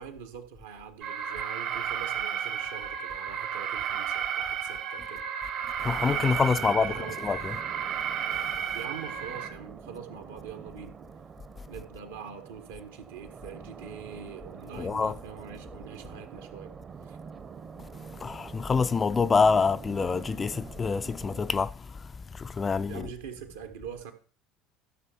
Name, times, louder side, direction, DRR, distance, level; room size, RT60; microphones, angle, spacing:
voice 1, 0.0-5.2 6.6-7.4 8.7-11.0 11.7-16.7 17.1-17.2 22.9-24.1, right 7 dB, 70° right, 1.5 m, -43 dB
Alarm, 1.0-9.5, right 8 dB, 50° right, 1.7 m, -32 dB
voice 2, 5.8-6.9 7.2-7.6 14.8-15.1 18.2-23.1, left 5 dB, 25° left, 0.4 m, -26 dB
sound 1, 5.8-21.5, right 6 dB, 30° right, 0.9 m, -46 dB
13.5 x 6.7 x 4.4 m
figure-of-eight pair, 65°, 0 cm